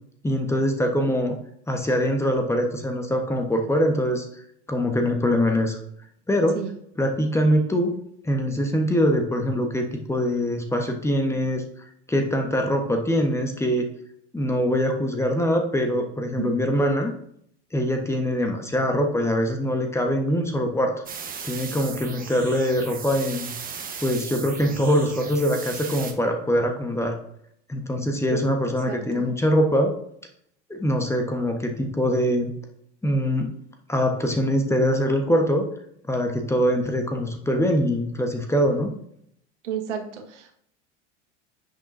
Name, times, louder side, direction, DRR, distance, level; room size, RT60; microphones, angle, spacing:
voice 1, 0.2-1.4 1.7-4.2 4.7-5.8 6.3-6.6 7.0-8.0 8.2-11.6 12.1-13.9 14.3-17.1 17.7-20.9 21.4-23.5 24.0-27.1 27.7-29.9 30.7-32.5 33.0-33.5 33.9-35.6 36.1-38.9, equal, 10° left, 3 dB, 1.3 m, -23 dB
sound 1, 21.1-26.1, right 6 dB, 25° right, 1.3 m, -37 dB
voice 2, 28.9-29.2 39.6-40.5, right 9 dB, 75° right, 4 dB, 1.6 m, -32 dB
10.0 x 6.2 x 2.7 m, 0.69 s
hypercardioid pair, 90°, 35 cm